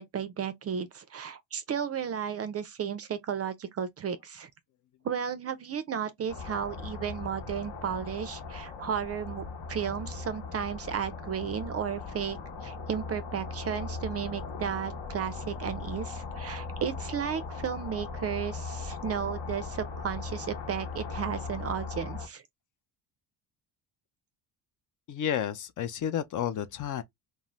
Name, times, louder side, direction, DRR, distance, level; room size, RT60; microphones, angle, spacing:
voice 1, 0.0-4.5 5.0-22.4, right 8 dB, 35° right, 0.4 m, -34 dB
sound 1, 6.3-22.3, left 4 dB, 65° left, 1.0 m, -39 dB
voice 2, 25.1-27.0, left 9 dB, 45° left, 0.4 m, -31 dB
2.6 x 2.1 x 2.9 m
supercardioid pair, 80°, 48 cm